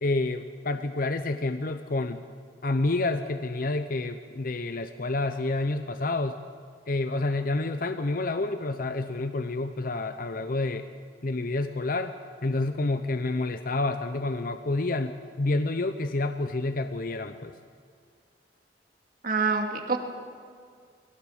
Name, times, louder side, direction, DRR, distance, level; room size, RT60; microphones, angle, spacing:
voice 1, 0.0-2.2 2.6-6.4 6.9-10.9 11.2-12.1 12.4-17.5, left 2 dB, 55° left, 8 dB, 0.8 m, -29 dB
voice 2, 19.2-20.0, right 4 dB, 55° right, 3 dB, 2.4 m, -26 dB
22.0 x 18.0 x 7.3 m, 2.2 s
head